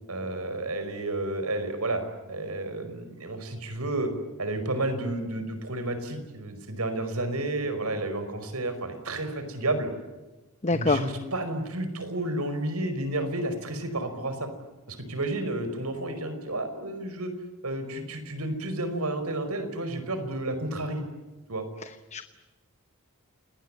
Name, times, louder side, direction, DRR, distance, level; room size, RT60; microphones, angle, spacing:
voice 1, 0.1-2.0 2.3-4.1 4.4-9.9 10.7-14.5 14.9-17.3 17.6-21.0 21.5-21.6, right 2 dB, 85° right, 9 dB, 5.2 m, -31 dB
voice 2, 10.6-11.1 22.1-22.2, left 3 dB, 30° left, 10 dB, 0.9 m, -24 dB
29.0 x 20.0 x 10.0 m, 1.1 s
head